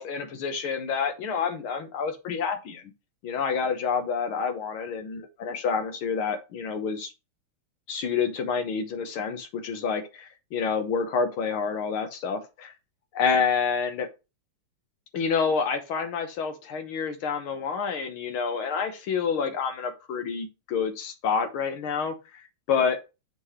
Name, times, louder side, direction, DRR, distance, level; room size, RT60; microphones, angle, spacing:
voice 1, 0.0-2.8 3.2-7.1 7.9-12.7 13.1-14.1 15.1-22.1 22.7-23.0, left 6 dB, 75° left, 1.9 m, -28 dB
7.5 x 3.4 x 4.2 m
omnidirectional pair, 2.3 m